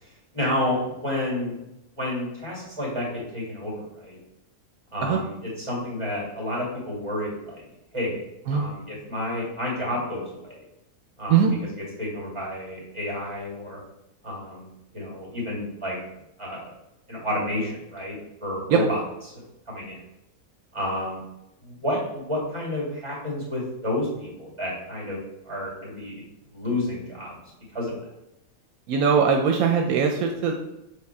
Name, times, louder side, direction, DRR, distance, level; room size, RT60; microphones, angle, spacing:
voice 1, 0.0-1.5 2.0-4.2 4.9-7.6 7.9-8.2 8.5-10.6 11.2-11.5 12.0-13.8 14.2-14.7 14.9-16.0 16.4-16.7 17.1-18.2 18.4-20.0 20.7-21.2 21.6-26.2 26.5-27.4 27.7-27.9, left 1 dB, 20° right, -5 dB, 2.4 m, -30 dB
voice 2, 28.9-30.5, right 6 dB, 85° right, 3 dB, 1.1 m, -20 dB
6.7 x 3.4 x 4.3 m, 0.88 s
omnidirectional pair, 1.5 m